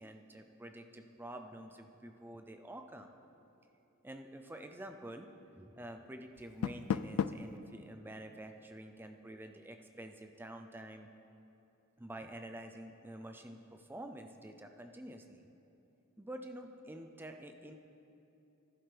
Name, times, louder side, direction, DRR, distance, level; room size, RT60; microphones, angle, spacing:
voice 1, 0.0-3.1 4.0-5.3 5.6-11.1 12.0-15.4 16.2-17.7, right 1 dB, 10° right, 5 dB, 0.5 m, -48 dB
Door, 6.3-7.6, left 7 dB, 85° left, 0.3 m, -35 dB
13.0 x 11.5 x 3.4 m, 2.9 s
head